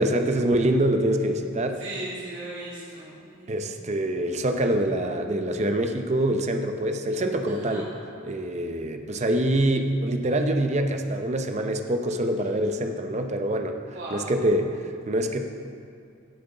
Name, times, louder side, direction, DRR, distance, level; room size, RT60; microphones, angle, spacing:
voice 1, 0.0-1.8 3.5-7.9 8.2-13.8 14.1-15.5, right 1 dB, 35° right, 5 dB, 0.6 m, -25 dB
voice 2, 1.8-3.6 7.5-7.9 13.9-14.3, right 1 dB, 60° right, -9 dB, 3.0 m, -37 dB
16.5 x 7.6 x 3.9 m, 2.4 s
head